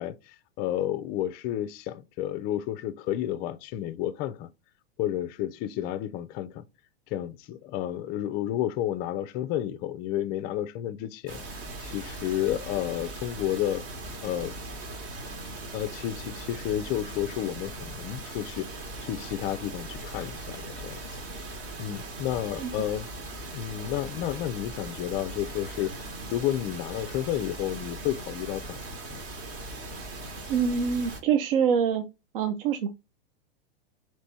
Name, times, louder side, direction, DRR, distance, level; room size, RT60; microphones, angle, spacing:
voice 1, 0.0-4.5 5.0-6.6 7.1-13.8 14.2-14.6 15.7-21.2 21.8-23.1 23.5-25.9 26.3-28.8 29.1-29.2, left 12 dB, 30° left, 0.4 m, -31 dB
sound 1, 11.3-31.2, right 2 dB, 40° right, 1.2 m, -39 dB
voice 2, 30.5-32.1 32.3-32.9, right 7 dB, 70° right, 0.5 m, -25 dB
3.3 x 3.0 x 4.1 m
hypercardioid pair, 120°, 30 cm